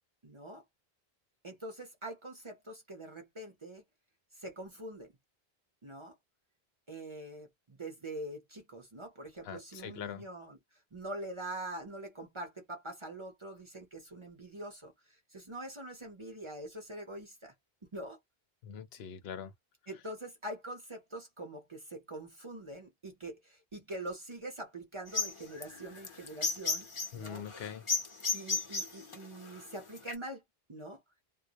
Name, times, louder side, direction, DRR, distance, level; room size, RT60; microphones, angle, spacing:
voice 1, 0.2-0.6 1.4-3.8 4.3-5.1 5.8-6.2 6.9-10.6 10.9-17.5 17.9-18.2 19.9-26.9 27.1-27.4 28.3-30.4 30.7-31.0, right 1 dB, 35° right, 0.6 m, -44 dB
voice 2, 9.4-10.3 18.6-19.5 27.1-27.8, left 8 dB, 75° left, 0.8 m, -43 dB
sound 1, 25.1-30.1, left 4 dB, 35° left, 0.7 m, -34 dB
2.2 x 2.0 x 2.7 m
omnidirectional pair, 1.1 m